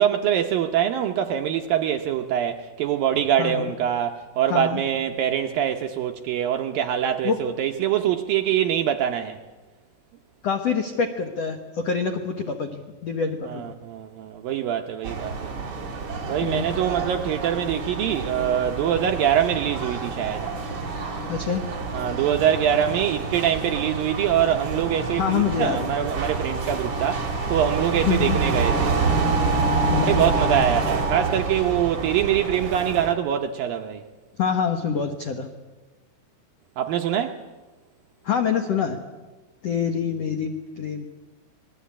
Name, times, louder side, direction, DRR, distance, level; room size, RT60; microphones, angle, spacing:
voice 1, 0.0-9.4 13.5-15.5 16.3-20.5 21.9-28.9 30.0-34.0 36.8-37.4, right 10 dB, 75° right, 2.1 m, -24 dB
voice 2, 3.4-3.7 4.5-4.8 7.2-7.4 10.4-13.7 16.4-16.8 21.3-21.6 25.1-25.9 28.0-28.4 29.9-30.2 34.4-35.5 38.2-39.0 39.6-41.1, left 6 dB, 80° left, 1.4 m, -26 dB
sound 1, 15.0-33.1, right 4 dB, 35° right, 2.9 m, -27 dB
26.5 x 19.5 x 8.6 m
omnidirectional pair, 5.0 m